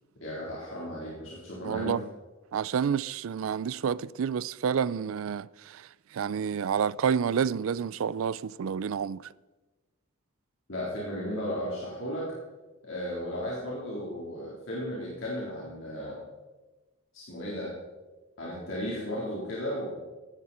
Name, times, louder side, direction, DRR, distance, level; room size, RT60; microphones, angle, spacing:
voice 1, 0.2-2.0 10.7-12.2 12.8-16.2 17.1-17.7 18.4-19.9, equal, 70° left, 3.8 m, -35 dB
voice 2, 1.6-2.0 2.5-5.9 6.1-9.2, right 7 dB, 80° right, 0.4 m, -29 dB
16.0 x 12.5 x 4.3 m
head